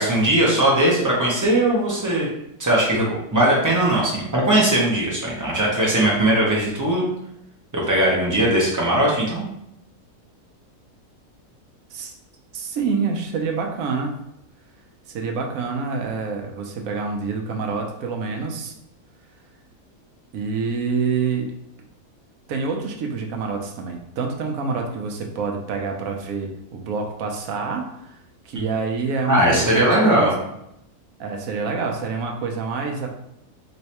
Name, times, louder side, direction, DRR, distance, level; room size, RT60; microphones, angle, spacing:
voice 1, 0.0-2.3 2.6-3.0 3.3-7.1 7.7-9.4 29.3-30.4, right 1 dB, 25° right, -4 dB, 0.4 m, -19 dB
voice 2, 12.5-14.1 15.1-18.7 20.3-21.5 22.5-28.2 28.4-30.3 31.2-33.1, right 5 dB, 70° right, 2 dB, 1.0 m, -27 dB
3.2 x 3.1 x 2.9 m, 0.80 s
omnidirectional pair, 1.6 m